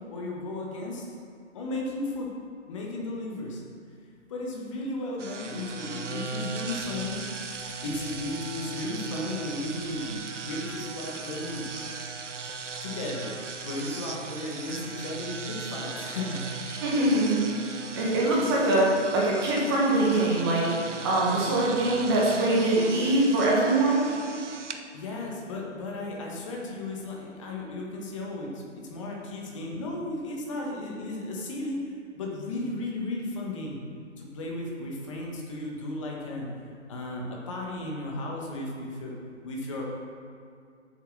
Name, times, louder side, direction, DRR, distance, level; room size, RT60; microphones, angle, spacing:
voice 1, 0.1-1.1 1.5-2.3 2.7-3.6 4.3-7.2 7.8-10.1 10.4-11.6 12.8-16.4 24.9-33.8 34.2-36.5 36.9-39.1 39.4-39.8, left 2 dB, 25° left, -2 dB, 1.6 m, -35 dB
sound 1, 5.2-24.8, right 5 dB, 70° right, 1.0 m, -38 dB
voice 2, 16.8-17.4 18.0-20.7 21.0-24.1, right 2 dB, 20° right, -4 dB, 1.5 m, -23 dB
8.2 x 7.3 x 6.4 m, 2.3 s
figure-of-eight pair, 145°, 37 cm